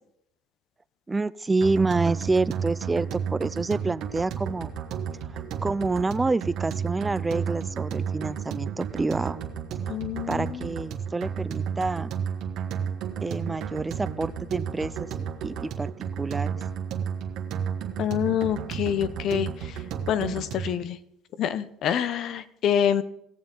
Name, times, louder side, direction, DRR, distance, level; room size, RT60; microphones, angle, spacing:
voice 1, 1.1-4.7 5.6-9.4 10.3-12.1 13.2-15.9 16.2-16.6, right 3 dB, 15° right, 18 dB, 0.3 m, -28 dB
sound 1, 1.6-20.8, right 7 dB, 65° right, 1.6 m, -32 dB
voice 2, 9.9-10.7 18.0-19.8 20.1-21.0 21.4-23.0, left 9 dB, 55° left, 15 dB, 0.7 m, -26 dB
18.5 x 7.2 x 3.8 m, 0.76 s
supercardioid pair, 95°, 0 cm